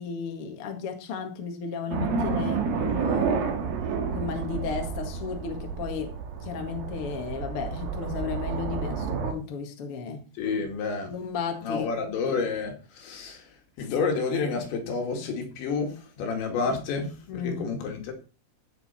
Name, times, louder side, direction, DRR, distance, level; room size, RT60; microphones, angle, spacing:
voice 1, 0.0-3.7 4.1-6.1 6.4-10.2 11.0-11.9 13.8-13.9 17.3-17.6, left 6 dB, 50° left, 1.7 m, -34 dB
sound 1, 1.9-9.3, right 5 dB, 60° right, 3.1 m, -30 dB
voice 2, 10.4-11.1 11.6-18.1, left 4 dB, 75° left, 4.5 m, -30 dB
15.5 x 6.6 x 4.3 m
omnidirectional pair, 5.3 m